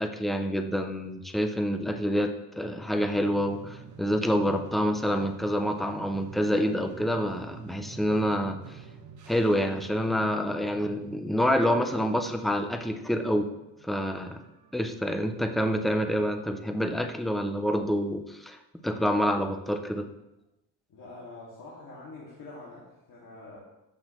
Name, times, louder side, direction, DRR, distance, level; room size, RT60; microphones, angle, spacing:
voice 1, 0.0-8.8 9.3-13.5 13.8-14.4 14.7-18.6 18.8-20.1, equal, ahead, 6 dB, 0.3 m, -27 dB
sound 1, 2.9-17.0, right 6 dB, 40° right, 1.1 m, -48 dB
voice 2, 20.9-23.6, left 2 dB, 45° left, -6 dB, 2.1 m, -45 dB
13.5 x 6.0 x 3.0 m, 0.94 s
cardioid pair, 160°, 44 cm